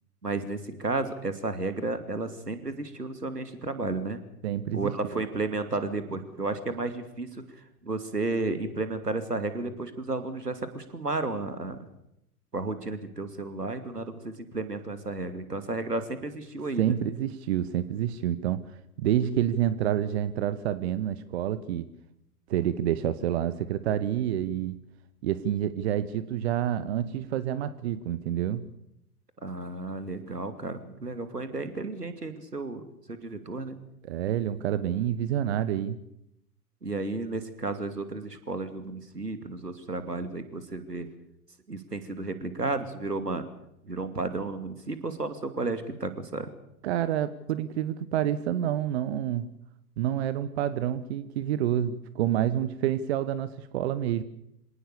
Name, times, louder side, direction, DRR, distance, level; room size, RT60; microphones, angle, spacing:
voice 1, 0.2-4.2 4.7-11.8 12.5-17.0 29.4-32.8 33.1-33.8 36.8-41.1 41.7-43.5 43.8-46.5, right 3 dB, 85° right, 10 dB, 2.8 m, -33 dB
voice 2, 4.4-5.2 16.8-18.7 19.0-21.9 22.5-24.8 25.2-28.7 34.0-36.0 46.8-49.4 50.0-54.2, right 11 dB, 45° right, 14 dB, 1.3 m, -28 dB
26.5 x 18.5 x 6.9 m, 0.79 s
figure-of-eight pair, 105°, 47 cm